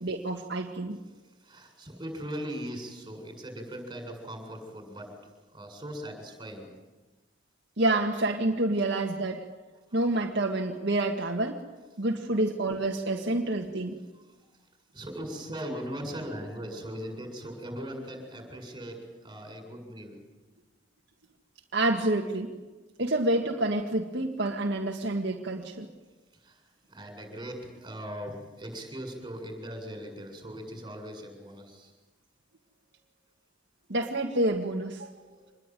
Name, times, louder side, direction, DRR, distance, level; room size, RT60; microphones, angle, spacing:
voice 1, 0.0-1.0 7.8-9.5 9.9-11.6 12.0-14.0 21.7-22.5 23.0-25.9 33.9-35.1, right 2 dB, 65° right, 1 dB, 1.9 m, -28 dB
voice 2, 1.4-6.7 14.9-20.2 26.4-26.6 26.9-31.9 35.1-35.4, equal, 25° right, 4 dB, 7.3 m, -39 dB
26.0 x 21.5 x 9.3 m, 1.2 s
head